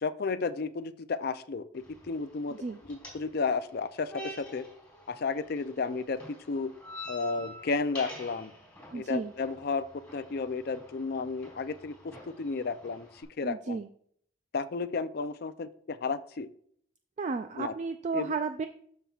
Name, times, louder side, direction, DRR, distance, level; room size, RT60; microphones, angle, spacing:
voice 1, 0.0-2.6 2.9-4.6 5.1-6.7 7.1-8.5 8.9-13.1 13.4-13.8 14.5-16.5 17.6-17.7 18.1-18.3, left 4 dB, 55° left, 12 dB, 0.4 m, -33 dB
sound 1, 1.7-13.2, equal, 10° left, 3.5 m, -48 dB
voice 2, 8.9-9.3 13.4-13.9 17.2-18.7, right 4 dB, 40° right, 8 dB, 0.3 m, -32 dB
12.5 x 5.8 x 2.4 m, 0.63 s
head